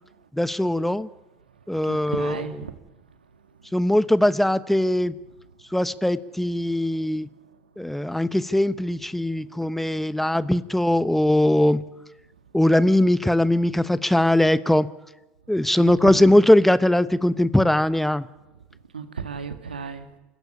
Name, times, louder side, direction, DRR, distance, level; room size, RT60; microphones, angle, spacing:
voice 1, 0.3-1.1 1.7-2.6 3.7-5.1 5.7-7.3 7.8-11.8 12.5-14.9 15.5-18.3, left 1 dB, 5° left, 15 dB, 1.0 m, -20 dB
voice 2, 1.9-2.7 15.8-16.2 18.9-20.1, right 6 dB, 85° right, 8 dB, 2.1 m, -34 dB
28.0 x 15.5 x 9.9 m, 1.0 s
hypercardioid pair, 75°, 5 cm